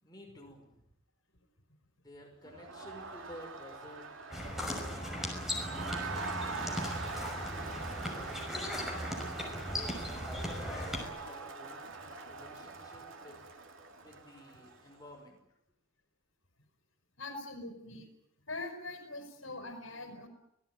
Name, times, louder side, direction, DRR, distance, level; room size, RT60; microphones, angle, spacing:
voice 1, 0.0-0.8 2.0-8.5 9.5-11.9 12.2-13.4 14.0-15.4, left 1 dB, 20° left, 1 dB, 5.7 m, -52 dB
Crowd, 2.4-15.0, right 4 dB, 75° right, 2.6 m, -43 dB
sound 1, 4.3-11.1, left 1 dB, ahead, 5.9 m, -38 dB
voice 2, 17.2-18.1 18.5-20.3, left 2 dB, 80° left, 5 dB, 5.2 m, -42 dB
26.0 x 18.5 x 9.4 m, 0.80 s
head